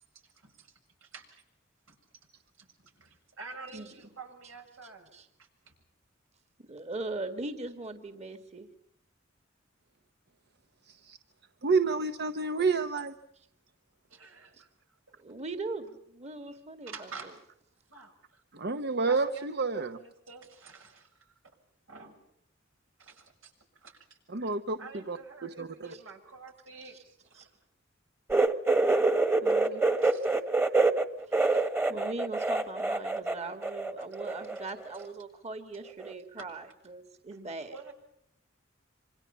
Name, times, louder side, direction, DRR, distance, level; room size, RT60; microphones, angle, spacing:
voice 1, 0.4-0.7 1.0-1.4 1.9-2.0 2.6-5.1 5.4-5.7 14.1-14.7 16.5-16.6 16.8-17.4 17.9-18.4 19.1-21.3 21.9-22.2 23.0-23.5 23.8-24.2 24.8-27.5 30.0-30.3 34.5-34.6 37.7-37.9, right 4 dB, 85° right, 4 dB, 7.1 m, -49 dB
voice 2, 3.7-4.1 4.8-5.3 6.6-8.7 14.5-14.6 15.2-17.3 25.9-26.0 27.3-27.5 29.4-29.8 31.2-37.8, right 2 dB, 35° right, 8 dB, 2.1 m, -40 dB
voice 3, 10.9-11.2 11.6-13.1 18.5-20.0 24.3-24.8 25.1-25.9, right 4 dB, 55° right, 9 dB, 1.0 m, -29 dB
sound 1, 28.3-33.4 33.6-34.6 34.9-35.0 36.0-36.1, right 3 dB, 10° right, 1.5 m, -26 dB
28.0 x 26.0 x 5.7 m, 0.74 s
head